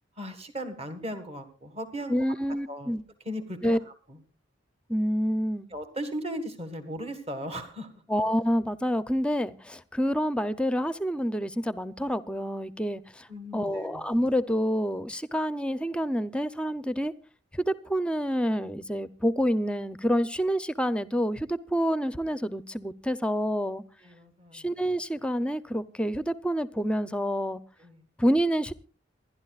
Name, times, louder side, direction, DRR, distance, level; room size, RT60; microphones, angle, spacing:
voice 1, 0.2-2.2 2.7-2.9 3.3-3.8 4.1-4.2 5.7-7.9 13.3-14.0 24.0-24.7 27.8-28.0, equal, 35° right, 1.7 m, -37 dB
voice 2, 2.1-3.0 3.6-3.8 4.9-5.7 8.1-13.3 13.5-17.1 17.5-23.8 24.5-27.6 28.2-28.7, equal, 5° left, 0.6 m, -28 dB
27.0 x 11.5 x 2.4 m
head